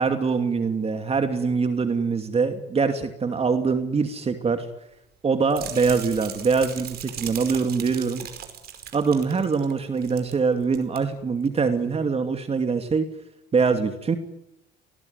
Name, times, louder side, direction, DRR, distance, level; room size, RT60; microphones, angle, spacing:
voice 1, 0.0-4.7 5.2-8.3 8.9-13.1 13.5-14.2, right 5 dB, 35° right, 7 dB, 2.7 m, -23 dB
sound 1, 5.5-10.4 10.6-11.0 11.4-11.6, right 9 dB, 60° right, 5.2 m, -38 dB
27.5 x 20.0 x 9.5 m, 0.87 s
cardioid pair, 90°, 18 cm